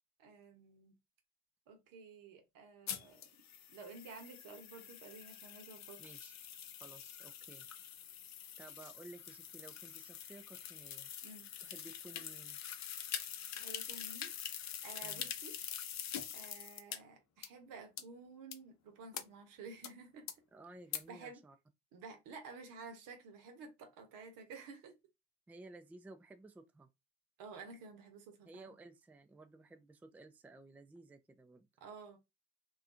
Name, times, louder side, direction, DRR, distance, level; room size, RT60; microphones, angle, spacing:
voice 1, 0.2-0.9 1.7-3.3 3.7-6.0 11.2-11.5 13.6-14.3 14.8-15.5 16.3-20.3 21.1-21.4 21.9-24.9 27.4-28.7 31.8-32.2, right 4 dB, 70° right, 0.8 m, -52 dB
sound 1, 2.9-17.0 17.4-17.5 18.0-18.1 18.5-18.6 19.1-19.2 19.8-19.9 20.3-20.4 20.9-21.0, left 9 dB, 50° left, 0.5 m, -45 dB
voice 2, 6.0-6.4 6.8-7.7 8.6-11.1 11.6-12.6 15.0-15.3 20.5-21.6 25.5-26.9 28.4-31.7, right 2 dB, 5° right, 0.3 m, -55 dB
2.6 x 2.3 x 2.4 m
hypercardioid pair, 45°, 34 cm